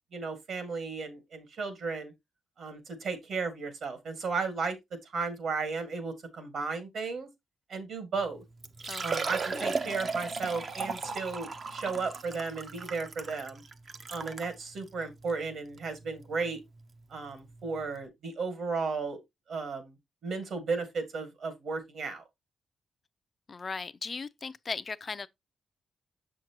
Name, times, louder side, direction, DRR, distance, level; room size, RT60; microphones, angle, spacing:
voice 1, 0.1-2.1 2.6-4.8 5.0-7.3 7.7-8.4 9.0-13.6 14.1-16.6 17.1-19.2 19.5-20.0 20.2-22.2, right 4 dB, 60° right, 2.1 m, -34 dB
Liquid, 8.2-8.3 8.6-14.5 15.2-15.3 15.8-15.9 17.5-17.6 17.8-17.9, right 4 dB, 40° right, 0.7 m, -35 dB
voice 2, 8.9-9.2 9.5-9.7 23.5-25.3, left 4 dB, 30° left, 0.5 m, -38 dB
7.2 x 6.0 x 2.9 m
cardioid pair, 140°, 0 cm